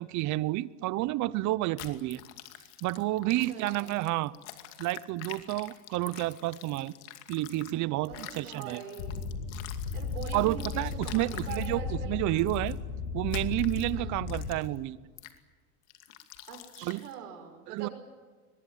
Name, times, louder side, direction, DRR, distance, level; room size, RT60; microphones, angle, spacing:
voice 1, 0.0-2.2 2.8-4.3 4.8-6.9 7.3-8.8 10.3-12.8 13.1-15.0 16.8-17.0 17.7-17.9, right 17 dB, 40° right, 0.8 m, -30 dB
sound 1, 1.8-7.7 8.0-11.7 12.4-12.7 13.3-13.9 14.3-14.8 15.2-15.4 15.9-17.1, left 13 dB, 65° left, 2.6 m, -47 dB
voice 2, 3.2-4.0 8.1-9.3 9.9-12.5 13.9-14.1 16.5-17.9, right 7 dB, 90° right, 6.1 m, -43 dB
sound 2, 9.0-14.6, left 5 dB, 80° left, 5.6 m, -35 dB
23.0 x 22.0 x 9.3 m
supercardioid pair, 125°, 45 cm